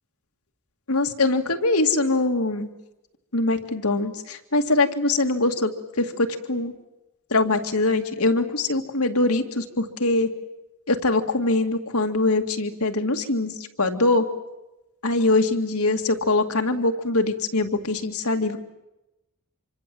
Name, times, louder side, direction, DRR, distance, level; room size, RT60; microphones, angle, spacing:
voice 1, 0.9-2.7 3.3-5.7 6.0-6.7 7.3-10.3 10.9-14.3 15.0-18.6, left 2 dB, 85° left, 5 dB, 2.2 m, -23 dB
27.0 x 24.5 x 7.8 m, 0.94 s
head